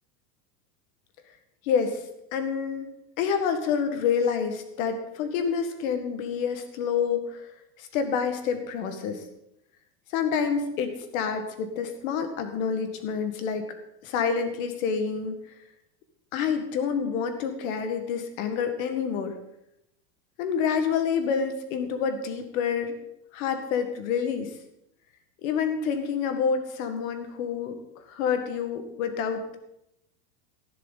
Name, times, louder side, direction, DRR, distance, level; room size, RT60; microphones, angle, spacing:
voice 1, 1.6-2.0 2.3-2.9 3.2-7.5 7.8-9.2 10.1-13.7 14.0-15.4 16.3-19.3 20.4-22.9 23.3-24.5 25.4-27.8 28.1-29.6, left 6 dB, 55° left, 7 dB, 1.9 m, -28 dB
15.0 x 11.0 x 4.1 m, 0.82 s
supercardioid pair, 175°, 48 cm